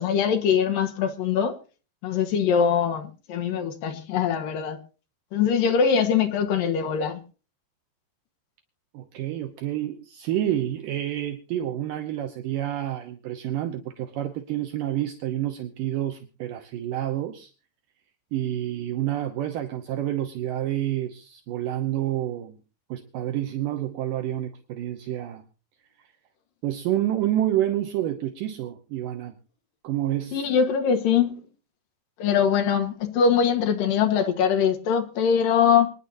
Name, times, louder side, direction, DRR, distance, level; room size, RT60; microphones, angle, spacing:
voice 1, 0.0-1.6 2.0-4.8 5.3-7.2 30.3-31.4 32.2-35.9, left 7 dB, 65° left, 2.6 m, -22 dB
voice 2, 8.9-17.5 18.3-22.6 22.9-25.4 26.6-29.3 29.8-30.5, right 12 dB, 75° right, 2.0 m, -28 dB
26.0 x 10.0 x 2.7 m
omnidirectional pair, 5.1 m